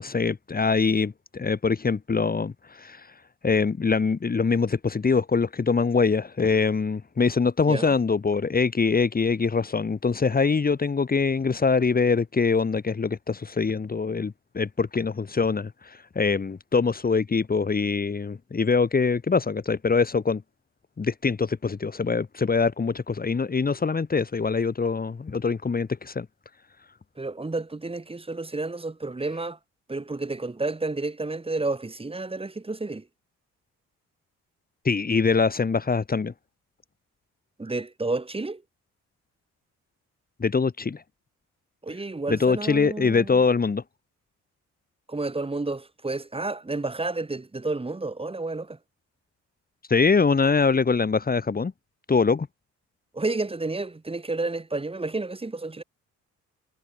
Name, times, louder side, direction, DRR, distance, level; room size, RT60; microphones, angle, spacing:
voice 1, 0.0-3.0 3.4-20.4 21.0-26.3 34.8-36.3 40.4-41.0 42.3-43.8 49.9-51.7 52.1-52.5, left 5 dB, 30° left, 2.4 m, -23 dB
voice 2, 27.2-29.6 29.9-33.1 37.6-38.6 41.8-43.4 45.1-48.8 53.1-55.8, right 3 dB, 20° right, 4.4 m, -30 dB
cardioid pair, 90°, 30 cm